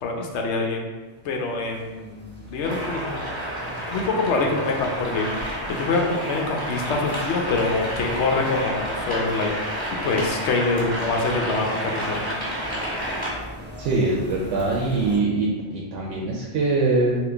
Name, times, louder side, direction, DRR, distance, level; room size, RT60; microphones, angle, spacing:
voice 1, 0.0-0.9 1.2-3.2 3.9-5.3 5.7-9.5 10.0-12.2, left 3 dB, 75° left, 1 dB, 0.9 m, -25 dB
sound 1, 0.9-15.2, equal, 15° right, 0.5 m, -40 dB
sound 2, 2.6-13.3, equal, 10° left, 1.4 m, -30 dB
voice 2, 13.8-17.2, right 3 dB, 85° right, -4 dB, 0.9 m, -23 dB
3.8 x 2.5 x 3.3 m, 1.3 s
omnidirectional pair, 1.2 m